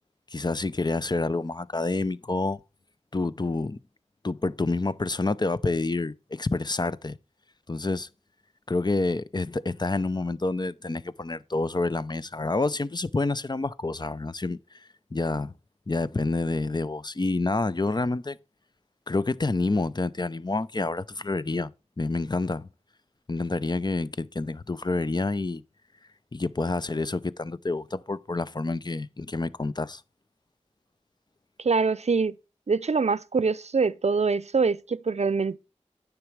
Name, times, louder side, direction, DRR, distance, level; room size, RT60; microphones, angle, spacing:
voice 1, 0.3-2.6 3.1-3.8 4.2-7.2 7.7-8.1 8.7-14.6 15.1-15.5 15.9-18.4 19.1-21.7 22.0-22.7 23.3-25.6 26.3-30.0, left 3 dB, 35° left, 0.5 m, -28 dB
voice 2, 31.6-32.4 32.7-35.6, right 4 dB, 70° right, 0.5 m, -24 dB
9.7 x 6.1 x 4.6 m
wide cardioid pair, 40°, 12 cm